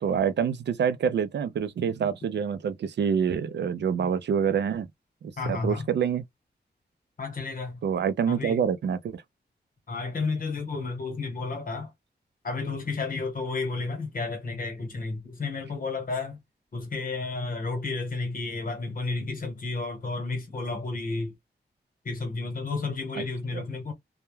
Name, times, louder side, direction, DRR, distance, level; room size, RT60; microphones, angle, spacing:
voice 1, 0.0-4.9 5.2-6.2 7.8-9.2 23.2-23.3 23.5-23.6, right 7 dB, 80° right, 0.4 m, -26 dB
voice 2, 5.4-5.9 7.2-7.8 8.3-8.6 9.9-11.9 12.4-16.4 16.7-21.3 22.0-23.9, left 3 dB, 55° left, 1.0 m, -32 dB
2.2 x 2.1 x 3.0 m
wide cardioid pair, 160°, 18 cm